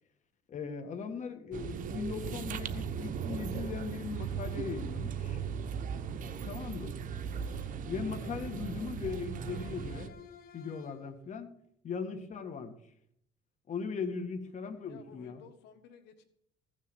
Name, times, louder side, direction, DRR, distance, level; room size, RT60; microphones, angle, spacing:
voice 1, 0.5-5.4 6.4-7.0 7.9-10.2 10.5-11.5 11.8-12.8 13.7-15.4, left 5 dB, 45° left, 6 dB, 1.9 m, -39 dB
sound 1, 1.5-10.1, right 7 dB, 50° right, 1.1 m, -38 dB
sound 2, 6.2-6.9 7.3-8.0 8.4-9.1 9.5-11.1, left 8 dB, 65° left, 1.4 m, -56 dB
voice 2, 14.9-16.3, left 8 dB, 85° left, 8 dB, 1.4 m, -53 dB
15.5 x 6.7 x 8.0 m, 0.71 s
cardioid pair, 110°, 17 cm